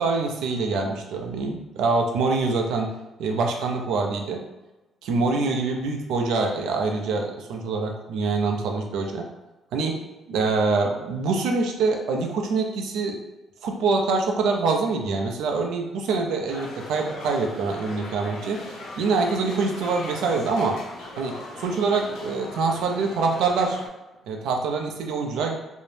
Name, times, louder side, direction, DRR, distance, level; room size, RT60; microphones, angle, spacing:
voice 1, 0.0-2.9 3.2-4.4 5.0-9.3 9.7-13.2 13.6-18.6 19.0-20.8 21.2-23.8 24.3-25.5, right 4 dB, 85° right, 2 dB, 0.4 m, -25 dB
sound 1, 16.5-23.9, left 2 dB, 70° left, 0.5 m, -39 dB
2.6 x 2.0 x 3.1 m, 1.1 s
cardioid pair, 155°, 0 cm